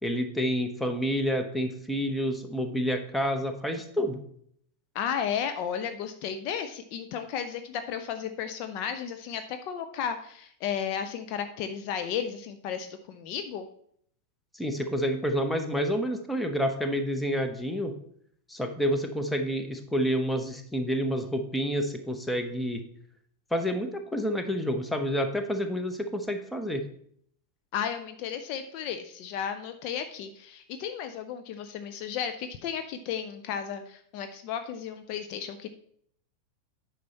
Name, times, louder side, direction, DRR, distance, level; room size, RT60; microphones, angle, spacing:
voice 1, 0.0-4.2 14.5-17.9 18.5-22.8 23.5-26.8, equal, 5° left, 6 dB, 1.0 m, -29 dB
voice 2, 4.9-13.7 27.7-35.7, left 8 dB, 45° left, 8 dB, 0.6 m, -34 dB
9.4 x 5.7 x 4.2 m, 0.65 s
figure-of-eight pair, 90°, 0 cm